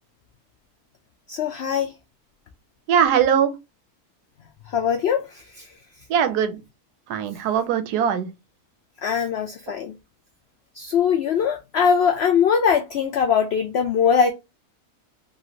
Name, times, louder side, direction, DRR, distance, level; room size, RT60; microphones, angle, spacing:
voice 1, 1.3-1.9 4.7-5.7 9.0-9.9 10.8-14.3, left 7 dB, 90° left, 0.5 m, -21 dB
voice 2, 2.9-3.5 6.1-6.6 7.1-8.3, right 8 dB, 90° right, 1.1 m, -20 dB
3.1 x 2.7 x 2.7 m
omnidirectional pair, 1.7 m